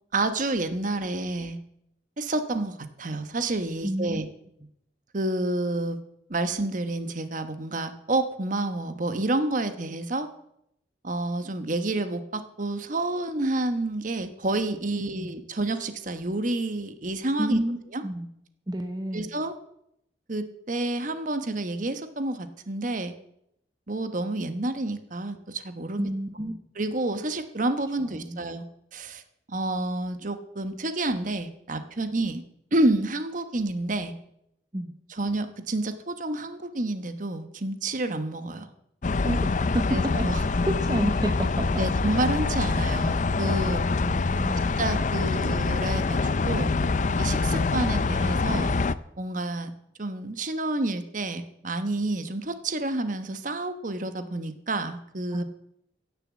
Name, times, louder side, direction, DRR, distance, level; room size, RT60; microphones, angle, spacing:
voice 1, 0.1-1.6 2.2-4.3 5.1-6.0 6.3-10.3 11.0-17.6 17.9-18.0 19.1-19.5 20.3-23.1 23.9-26.0 26.8-28.6 28.9-29.2 29.5-32.4 32.7-34.1 35.1-38.7 39.9-40.4 41.8-43.8 44.8-46.7 47.2-48.8 49.2-49.7 50.0-55.4, right 2 dB, 45° right, 9 dB, 1.1 m, -29 dB
voice 2, 3.8-4.2 15.2-15.4 17.4-17.8 18.0-18.3 18.7-19.4 26.0-26.5 28.0-28.4 34.7-34.9 39.2-40.0 40.7-41.7 44.1-44.7 55.3-55.4, right 1 dB, 20° right, 5 dB, 0.9 m, -30 dB
sound 1, 39.0-48.9, left 3 dB, 40° left, 0.5 m, -25 dB
16.5 x 7.1 x 7.5 m, 0.76 s
head